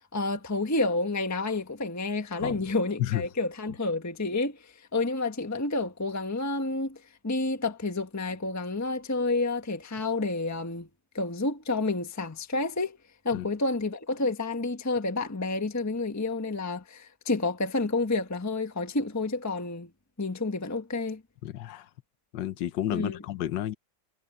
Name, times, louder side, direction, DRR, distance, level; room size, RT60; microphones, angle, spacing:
voice 1, 0.1-10.9 11.1-13.0 13.2-19.9 20.2-21.2 22.9-23.2, left 3 dB, 10° left, 1.1 m, -29 dB
voice 2, 21.4-21.9 22.3-23.7, left 12 dB, 75° left, 1.5 m, -31 dB
omnidirectional pair, 2.0 m